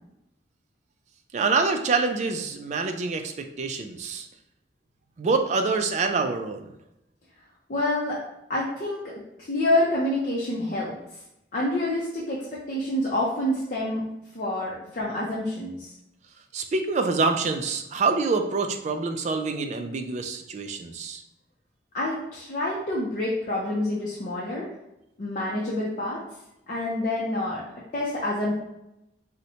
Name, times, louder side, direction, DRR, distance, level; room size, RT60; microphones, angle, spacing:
voice 1, 1.3-4.3 5.2-6.7 16.5-21.2, right 4 dB, 40° right, 6 dB, 0.3 m, -26 dB
voice 2, 7.7-8.2 8.5-9.1 9.4-10.9 11.5-14.0 14.3-15.9 21.9-24.7 25.2-26.2 26.7-27.6 27.9-28.5, left 1 dB, 50° left, -5 dB, 0.5 m, -27 dB
4.1 x 2.1 x 2.7 m, 0.88 s
head